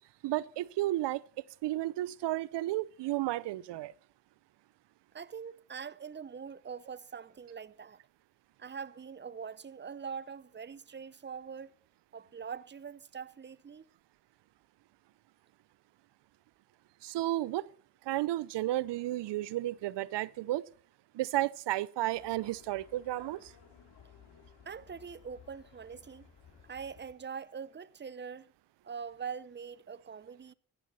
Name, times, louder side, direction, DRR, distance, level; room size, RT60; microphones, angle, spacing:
voice 1, 0.2-1.2 1.6-3.9 17.0-17.7 18.1-20.7 21.1-23.5, right 15 dB, 85° right, 0.6 m, -32 dB
voice 2, 5.1-8.0 8.6-11.8 12.1-13.9 24.6-26.3 26.6-28.5 28.8-30.5, right 6 dB, 25° right, 0.7 m, -43 dB
sound 1, 22.1-27.1, left 7 dB, 75° left, 2.3 m, -58 dB
15.0 x 12.0 x 4.1 m
supercardioid pair, 50°, 41 cm